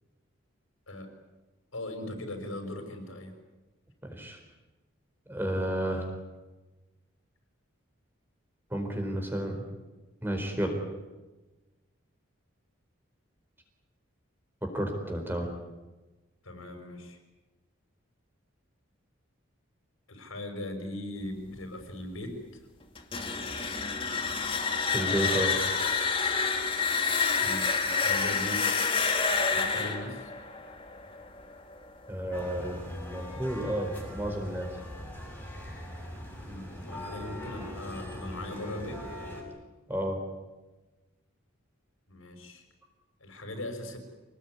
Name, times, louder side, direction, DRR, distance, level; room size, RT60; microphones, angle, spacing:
voice 1, 1.7-3.3 16.4-17.2 20.1-22.4 27.4-28.7 29.5-30.3 36.4-39.0 42.1-42.6 43.2-44.0, left 1 dB, 80° left, 5 dB, 6.3 m, -39 dB
voice 2, 4.0-4.4 5.3-6.0 8.7-9.6 10.2-10.8 14.7-15.5 24.9-25.6 32.1-34.7 39.9-40.2, right 1 dB, 10° right, 4 dB, 4.5 m, -31 dB
sound 1, 23.0-31.8, left 5 dB, 25° left, 2.4 m, -28 dB
sound 2, 32.3-39.4, left 1 dB, 10° left, 6.5 m, -41 dB
26.5 x 19.5 x 9.8 m, 1.2 s
head